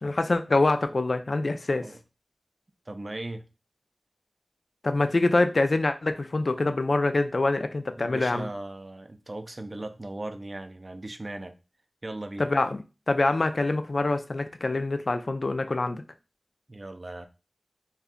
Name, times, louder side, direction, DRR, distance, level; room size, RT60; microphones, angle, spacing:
voice 1, 0.0-1.8 4.8-8.5 12.4-16.0, left 2 dB, 70° left, 0.3 m, -25 dB
voice 2, 2.9-3.5 8.0-11.5 12.0-12.5 16.7-17.3, right 2 dB, 45° right, 0.4 m, -38 dB
2.5 x 2.2 x 3.6 m
wide cardioid pair, 60°, 0 cm